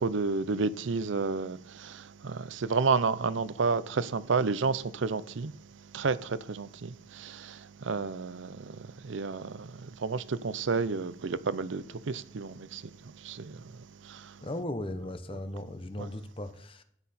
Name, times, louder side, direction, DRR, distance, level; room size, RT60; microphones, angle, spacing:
voice 1, 0.0-5.5 5.9-12.8 13.2-13.6 14.0-14.3 16.0-16.1, right 4 dB, 75° right, 0.6 m, -31 dB
voice 2, 14.4-16.8, left 1 dB, 25° left, 0.8 m, -37 dB
14.0 x 9.8 x 4.2 m
head